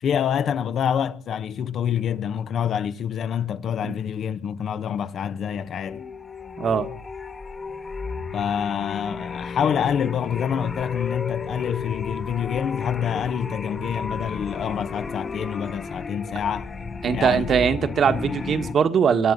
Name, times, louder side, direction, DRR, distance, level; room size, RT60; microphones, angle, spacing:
voice 1, 0.0-6.0 8.3-16.7 17.1-17.4, left 8 dB, 65° left, 1.1 m, -26 dB
sound 1, 5.4-18.7, left 4 dB, 35° left, 1.9 m, -33 dB
voice 2, 17.0-19.3, right 7 dB, 60° right, 1.6 m, -21 dB
23.0 x 11.0 x 5.4 m
cardioid pair, 90°, 0 cm